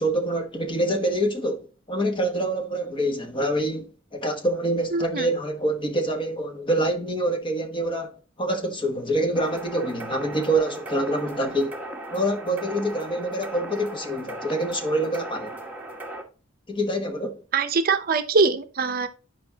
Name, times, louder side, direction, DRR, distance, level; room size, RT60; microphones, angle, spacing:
voice 1, 0.0-11.8 12.1-15.6 16.7-17.4, right 1 dB, 25° left, 1.0 m, -26 dB
voice 2, 4.9-5.3 17.5-19.1, right 4 dB, 45° right, 0.6 m, -23 dB
sound 1, 9.4-16.2, right 1 dB, 10° right, 1.1 m, -37 dB
9.4 x 5.2 x 2.8 m
head